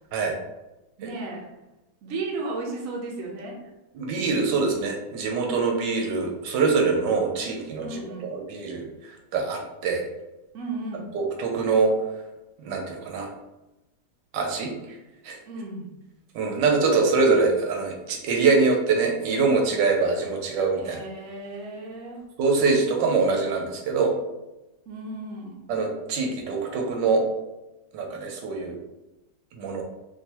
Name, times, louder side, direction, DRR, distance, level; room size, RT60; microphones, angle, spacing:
voice 1, 1.0-1.5 2.0-3.6 7.8-8.3 10.5-11.1 15.5-15.9 20.8-22.2 24.9-25.7, right 2 dB, 60° right, -1 dB, 1.0 m, -34 dB
voice 2, 3.9-8.0 8.3-8.9 9.3-10.1 11.1-11.9 12.6-13.3 14.3-14.7 15.2-15.4 16.3-21.0 22.4-24.1 25.7-27.2 27.9-28.8 29.6-29.8, right 4 dB, 80° right, 2 dB, 1.3 m, -24 dB
3.7 x 2.6 x 2.8 m, 1.0 s
omnidirectional pair, 1.9 m